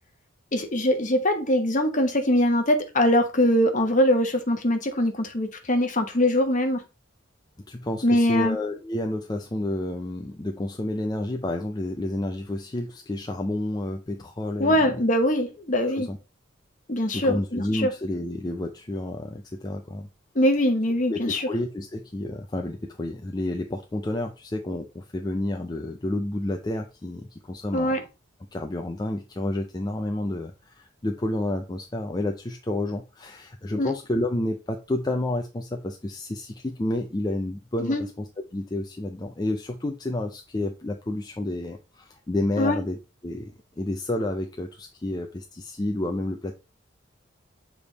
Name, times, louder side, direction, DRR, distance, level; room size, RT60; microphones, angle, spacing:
voice 1, 0.5-6.8 8.0-8.6 14.6-16.1 16.9-17.9 20.3-21.5 27.7-28.0 33.8-33.9 37.8-38.0 42.6-42.8, left 1 dB, 40° left, 1.1 m, -22 dB
voice 2, 7.7-15.0 16.0-16.2 17.1-20.1 21.1-28.0 28.5-46.5, left 1 dB, 20° left, 0.5 m, -30 dB
7.0 x 3.5 x 4.0 m
head